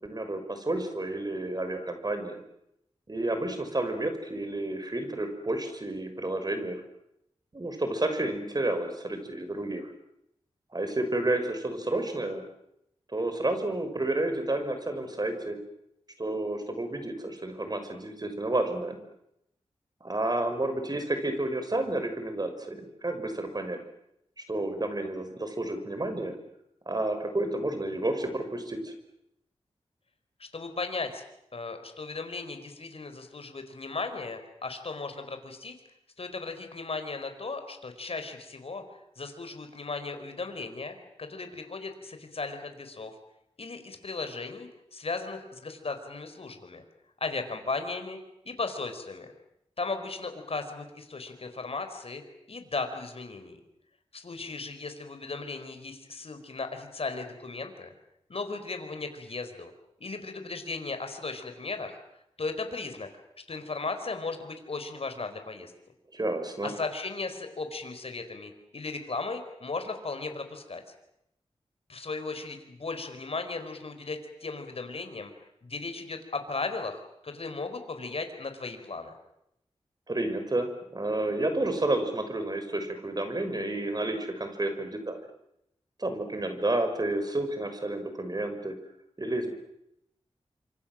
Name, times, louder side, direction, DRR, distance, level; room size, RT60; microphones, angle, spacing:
voice 1, 0.0-2.4 3.1-6.8 7.5-9.9 10.7-12.4 13.1-15.6 16.2-19.0 20.0-23.8 24.5-26.4 26.9-28.9 66.1-66.7 80.1-85.2 86.0-88.8 89.2-89.5, right 2 dB, 35° right, 7 dB, 6.0 m, -30 dB
voice 2, 30.4-31.2 31.5-35.8 36.2-38.8 39.2-43.1 43.6-46.8 47.2-48.2 48.4-49.3 49.8-52.2 52.5-53.6 54.1-57.9 58.3-59.7 60.0-62.0 62.4-63.1 63.5-65.7 66.6-70.8 71.9-75.3 75.6-79.1, left 3 dB, 60° left, 7 dB, 4.6 m, -36 dB
27.0 x 26.0 x 7.6 m, 0.80 s
cardioid pair, 60°, 11 cm